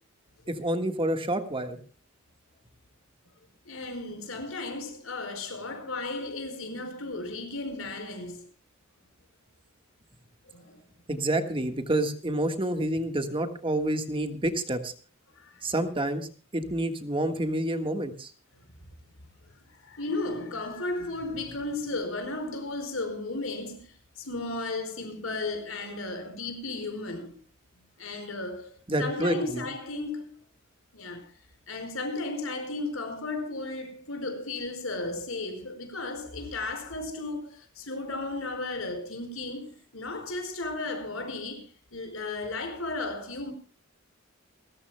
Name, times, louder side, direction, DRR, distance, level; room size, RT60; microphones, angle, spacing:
voice 1, 0.5-1.8 11.1-14.9 15.6-18.3 28.9-29.7, right 1 dB, 25° right, 1.5 m, -28 dB
voice 2, 3.6-8.5 10.5-10.8 15.3-15.7 18.6-18.7 19.4-27.4 28.0-28.7 29.0-30.4 30.9-31.3 31.7-41.7 41.9-43.5, left 2 dB, 80° left, 4.8 m, -35 dB
29.0 x 14.5 x 2.2 m
head